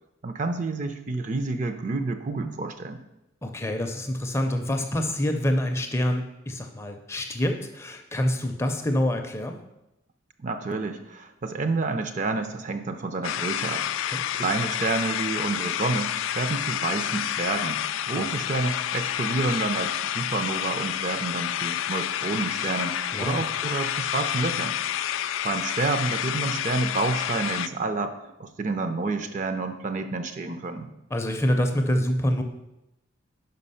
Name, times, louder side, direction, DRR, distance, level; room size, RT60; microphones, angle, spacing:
voice 1, 0.2-3.0 10.4-13.8 14.3-16.1 16.4-24.8 25.1-28.1 28.4-30.9, right 3 dB, 35° right, 8 dB, 0.4 m, -29 dB
voice 2, 3.4-9.6 14.1-14.2 18.1-18.3 23.1-23.5 31.1-32.4, left 1 dB, 15° left, 4 dB, 0.5 m, -26 dB
sound 1, 13.2-27.7, left 11 dB, 75° left, 0.3 m, -29 dB
5.6 x 5.3 x 5.5 m, 0.90 s
head